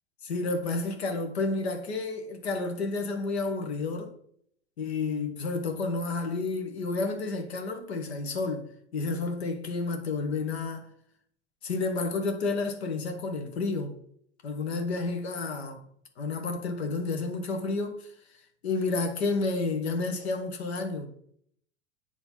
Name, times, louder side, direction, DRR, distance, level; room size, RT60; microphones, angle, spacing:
voice 1, 0.2-4.1 4.8-10.9 11.6-13.9 14.4-15.8 16.2-18.1 18.6-21.1, left 3 dB, 75° left, 1.4 m, -30 dB
8.0 x 3.4 x 5.5 m
hypercardioid pair, 90°, 32 cm